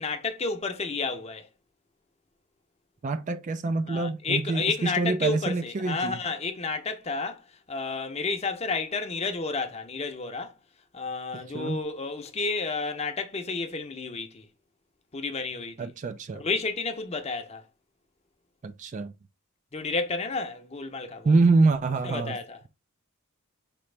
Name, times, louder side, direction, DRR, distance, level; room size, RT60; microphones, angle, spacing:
voice 1, 0.0-1.5 3.9-7.4 7.7-10.5 10.9-14.5 15.1-15.9 16.3-17.6 19.7-21.3 22.0-22.6, left 4 dB, 30° left, 0.7 m, -31 dB
voice 2, 3.0-6.2 11.5-11.8 15.8-16.4 18.6-19.1 21.2-22.4, right 3 dB, 35° right, 0.3 m, -25 dB
5.2 x 2.9 x 3.3 m
head